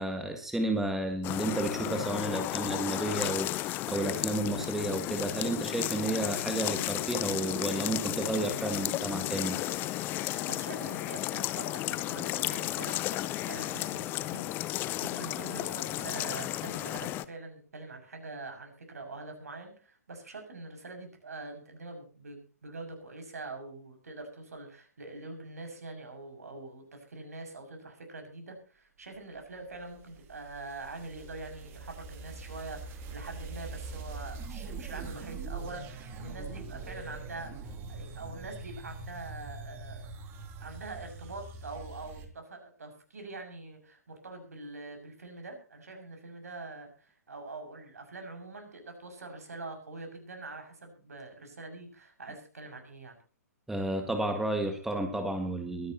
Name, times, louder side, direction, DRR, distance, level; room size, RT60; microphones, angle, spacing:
voice 1, 0.0-9.6 53.7-55.9, right 1 dB, 5° right, 5 dB, 1.8 m, -32 dB
sound 1, 1.2-17.2, left 15 dB, 25° left, 0.7 m, -33 dB
voice 2, 10.5-40.1 40.6-53.2, right 3 dB, 70° right, 5 dB, 6.4 m, -44 dB
sound 2, 29.4-42.3, right 3 dB, 25° right, 2.7 m, -43 dB
23.0 x 11.0 x 2.9 m, 0.39 s
figure-of-eight pair, 125°, 9 cm